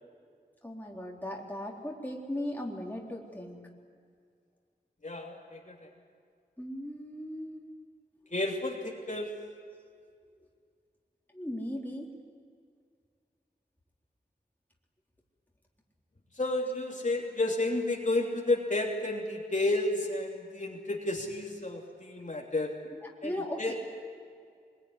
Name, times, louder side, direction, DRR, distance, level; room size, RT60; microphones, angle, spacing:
voice 1, 0.6-3.6 6.6-7.6 11.3-12.1 23.0-23.7, left 1 dB, 10° left, -2 dB, 3.8 m, -37 dB
voice 2, 5.0-5.7 8.3-9.3 16.4-22.7 23.2-23.7, left 2 dB, 45° left, -1 dB, 3.1 m, -31 dB
24.5 x 21.5 x 9.9 m, 2.2 s
wide cardioid pair, 70°, 17 cm